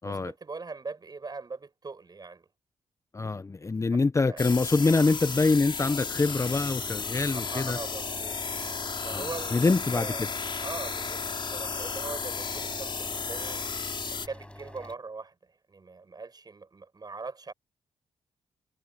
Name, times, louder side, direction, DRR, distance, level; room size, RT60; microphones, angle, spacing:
voice 1, 0.1-2.5 4.3-4.5 7.5-8.4 9.0-10.3 10.6-13.6 14.1-15.3 15.7-17.5, right 4 dB, 35° right, 7.0 m, -41 dB
voice 2, 3.1-7.8 9.1-10.3, left 3 dB, 25° left, 0.7 m, -25 dB
sound 1, 4.4-14.3, left 5 dB, 45° left, 4.0 m, -34 dB
sound 2, 6.3-14.9, left 1 dB, 10° left, 7.3 m, -47 dB
cardioid pair, 75°, 11 cm